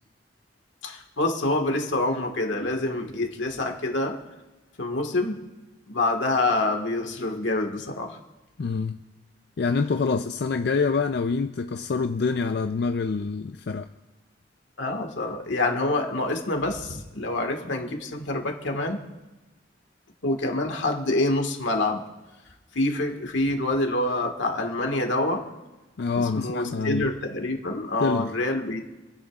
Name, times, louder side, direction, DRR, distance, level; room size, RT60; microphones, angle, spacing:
voice 1, 0.8-4.2 4.8-5.4 5.9-8.2 14.8-19.0 20.2-22.0 22.7-25.5 26.1-28.8, left 2 dB, 90° left, 3 dB, 1.7 m, -26 dB
voice 2, 8.6-9.0 9.6-13.9 26.0-27.1 28.0-28.3, left 4 dB, 60° left, 6 dB, 0.4 m, -26 dB
30.0 x 10.0 x 2.4 m, 1.1 s
head